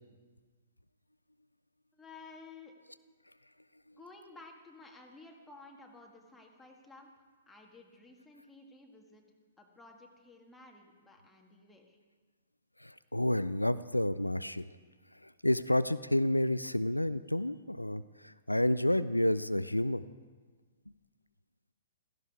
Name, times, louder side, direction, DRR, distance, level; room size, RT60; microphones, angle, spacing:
voice 1, 1.9-2.8 3.9-12.0, left 3 dB, 5° left, 1 dB, 1.8 m, -54 dB
voice 2, 12.8-14.8 15.1-20.0, left 1 dB, 85° left, 15 dB, 0.4 m, -30 dB
16.5 x 15.0 x 4.8 m, 1.5 s
figure-of-eight pair, 115°, 0 cm